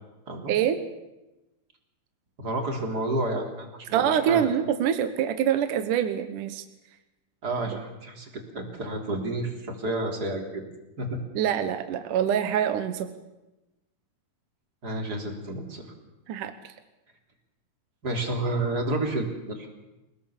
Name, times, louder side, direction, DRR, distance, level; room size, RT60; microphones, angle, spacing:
voice 1, 0.5-0.8 3.9-6.6 7.7-7.8 11.3-13.1 16.3-16.7, right 9 dB, 70° right, 9 dB, 2.5 m, -25 dB
voice 2, 2.4-4.5 7.4-10.6 11.0-11.1 14.8-15.9 18.0-19.7, right 2 dB, 25° right, 3 dB, 3.7 m, -30 dB
28.5 x 18.5 x 7.3 m, 1.0 s
omnidirectional pair, 4.1 m